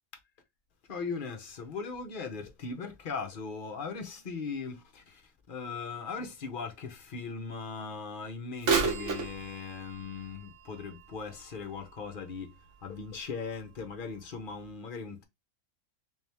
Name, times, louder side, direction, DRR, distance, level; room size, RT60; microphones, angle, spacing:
voice 1, 0.9-15.2, left 5 dB, 45° left, 0.7 m, -39 dB
Bird vocalization bird call bird song / Telephone, 8.6-12.4 13.0-13.1 13.9-14.0 14.6-14.7, right 5 dB, 55° right, 1.1 m, -33 dB
3.7 x 3.0 x 3.3 m
omnidirectional pair, 1.6 m